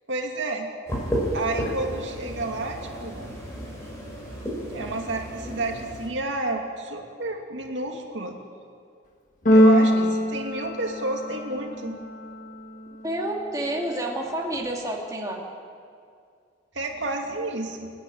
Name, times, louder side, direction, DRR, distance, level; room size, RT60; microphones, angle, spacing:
voice 1, 0.1-0.7 1.3-3.3 4.7-8.4 9.5-12.0 16.7-17.9, right 2 dB, 65° right, 2 dB, 2.6 m, -30 dB
sound 1, 0.9-6.1, equal, 15° left, 5.6 m, -32 dB
Keyboard (musical), 9.5-11.6, equal, 40° left, 1.7 m, -20 dB
voice 2, 9.7-10.1 13.0-15.4, right 1 dB, 15° right, -1 dB, 2.7 m, -29 dB
29.5 x 10.0 x 9.0 m, 2.3 s
head